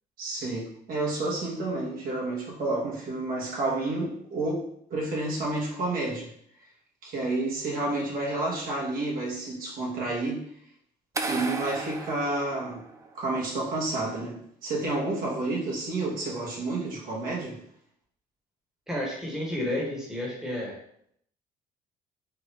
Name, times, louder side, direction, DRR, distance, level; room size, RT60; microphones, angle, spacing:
voice 1, 0.2-4.6 4.9-6.3 7.0-10.4 11.3-12.8 13.1-17.6, right 2 dB, 60° right, -4 dB, 1.3 m, -30 dB
sound 1, 11.1-13.2, right 3 dB, 20° right, 0.4 m, -34 dB
voice 2, 18.9-20.7, left 1 dB, 5° right, -4 dB, 1.3 m, -31 dB
4.5 x 2.6 x 3.4 m, 0.68 s
cardioid pair, 110°, 17 cm